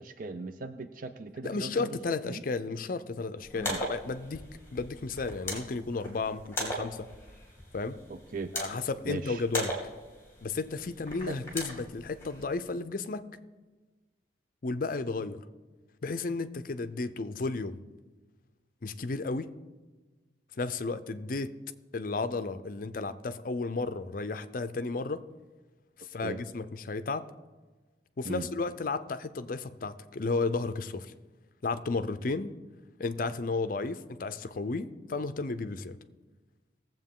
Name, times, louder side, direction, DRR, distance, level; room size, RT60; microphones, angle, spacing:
voice 1, 0.0-2.0 2.2-2.4 3.5-3.8 8.1-8.5 9.0-9.4 11.3-11.4 26.2-26.4 28.2-28.5, right 3 dB, 50° right, 9 dB, 0.5 m, -38 dB
voice 2, 1.4-4.4 4.7-7.1 7.7-8.0 8.5-9.7 10.4-13.2 14.6-15.4 16.0-17.8 18.8-19.5 20.6-21.5 21.9-25.2 26.0-27.3 28.2-31.1 31.6-32.6 33.0-36.0, left 3 dB, 50° left, 12 dB, 0.5 m, -33 dB
sound 1, 3.4-12.4, left 1 dB, 15° left, 2.5 m, -39 dB
18.5 x 7.6 x 3.7 m, 1.3 s
head